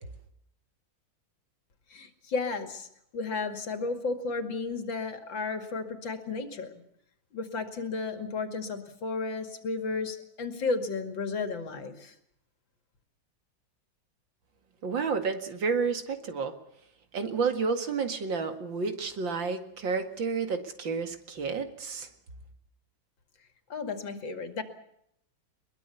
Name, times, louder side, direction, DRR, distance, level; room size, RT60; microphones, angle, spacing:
voice 1, 1.9-2.9 3.1-6.8 7.3-12.1 23.7-24.6, left 4 dB, 85° left, 7 dB, 3.1 m, -33 dB
voice 2, 14.8-16.5 17.1-22.1, right 5 dB, 80° right, 7 dB, 2.8 m, -30 dB
22.0 x 21.5 x 7.1 m, 0.74 s
omnidirectional pair, 2.0 m